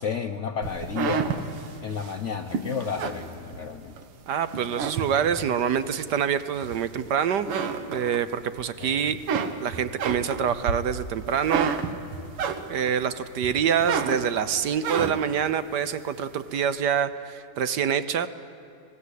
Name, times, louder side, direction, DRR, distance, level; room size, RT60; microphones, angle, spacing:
voice 1, 0.0-1.3 1.8-4.0 8.8-9.2, left 6 dB, 70° left, 5 dB, 0.7 m, -32 dB
sound 1, 0.6-4.0 4.5-5.6 6.1-7.1 7.4-8.6 9.0-13.0 13.4-15.4, right 6 dB, 80° right, 2.2 m, -30 dB
voice 2, 4.3-7.5 7.9-9.2 9.6-11.7 12.7-18.3, right 8 dB, 60° right, 13 dB, 1.2 m, -26 dB
26.0 x 18.5 x 8.3 m, 2.9 s
omnidirectional pair, 2.4 m